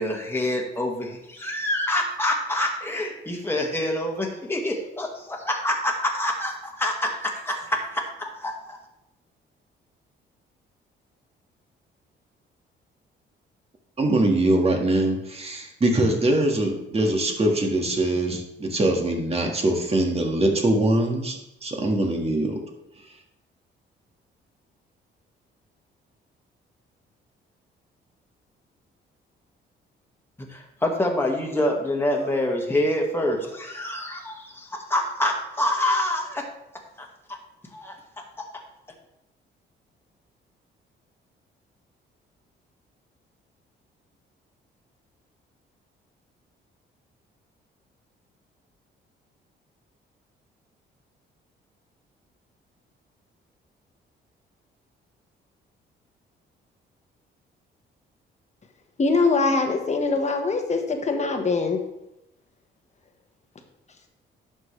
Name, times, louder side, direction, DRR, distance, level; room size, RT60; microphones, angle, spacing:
voice 1, 0.0-8.8 30.5-36.4 37.0-37.1 37.7-38.0, left 1 dB, 10° left, 0 dB, 1.8 m, -26 dB
voice 2, 14.0-22.6, right 1 dB, 30° right, 2 dB, 1.9 m, -23 dB
voice 3, 59.0-61.8, left 3 dB, 35° left, 4 dB, 1.4 m, -23 dB
11.0 x 6.3 x 3.3 m, 0.87 s
cardioid pair, 90°, 20 cm